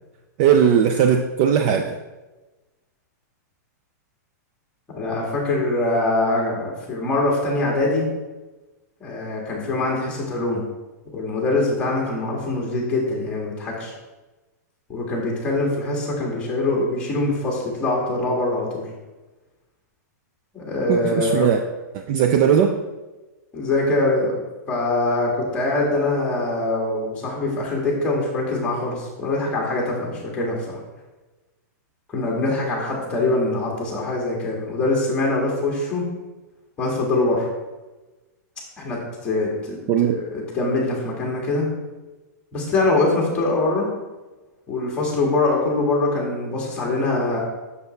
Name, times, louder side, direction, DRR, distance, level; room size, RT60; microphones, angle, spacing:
voice 1, 0.4-2.0 20.9-21.6 22.1-22.8 39.9-40.2, right 8 dB, 30° right, 5 dB, 0.4 m, -18 dB
voice 2, 4.9-8.1 9.0-10.6 11.1-13.9 14.9-18.9 20.5-21.5 23.5-24.4 24.7-30.8 32.1-36.0 36.8-37.5 38.8-41.7 42.5-43.9 44.7-47.4, left 2 dB, 10° left, -2 dB, 1.7 m, -23 dB
6.9 x 6.7 x 3.2 m, 1.1 s
supercardioid pair, 170°, 10 cm